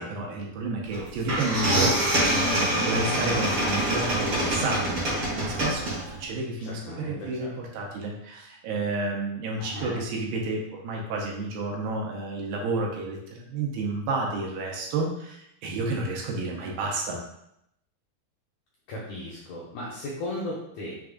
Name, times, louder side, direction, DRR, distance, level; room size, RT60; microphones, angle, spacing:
voice 1, 0.0-1.9 2.2-5.0 5.4-17.2, right 3 dB, 80° right, -1 dB, 2.5 m, -31 dB
sound 1, 0.9-1.0 1.3-6.2, right 1 dB, 40° right, 1.9 m, -25 dB
voice 2, 6.6-7.5 9.6-10.0 18.9-21.0, left 1 dB, 80° left, -5 dB, 1.7 m, -36 dB
6.3 x 3.5 x 2.3 m, 0.79 s
omnidirectional pair, 4.3 m